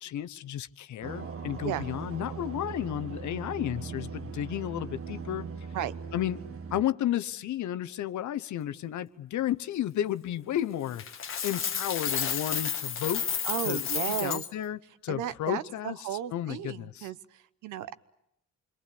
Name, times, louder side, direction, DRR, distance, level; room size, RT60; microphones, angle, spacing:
voice 1, 0.0-5.5 6.1-6.4 6.7-11.0 11.4-13.2 13.6-17.1, left 11 dB, 70° left, 1.0 m, -32 dB
sound 1, 1.0-6.8, right 5 dB, 45° right, 1.7 m, -39 dB
Coin (dropping), 11.0-14.5, left 7 dB, 45° left, 1.4 m, -31 dB
voice 2, 13.4-14.4 15.1-17.9, right 12 dB, 90° right, 1.0 m, -34 dB
26.5 x 23.0 x 8.5 m
cardioid pair, 90°, 30 cm